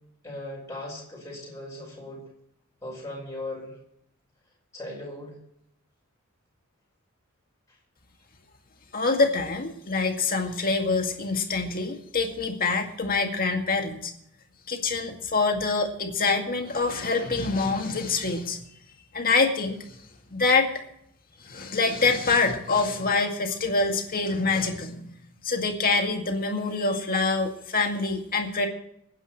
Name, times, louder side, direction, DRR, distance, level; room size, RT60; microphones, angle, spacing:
voice 1, 0.2-2.3 2.8-3.8 4.7-5.4, left 1 dB, 15° left, -4 dB, 5.2 m, -38 dB
voice 2, 8.9-14.1 14.7-18.6 19.1-19.8 20.3-20.7 21.4-25.1 25.4-28.7, left 3 dB, 45° left, 3 dB, 2.1 m, -25 dB
26.0 x 9.9 x 3.1 m, 0.74 s
head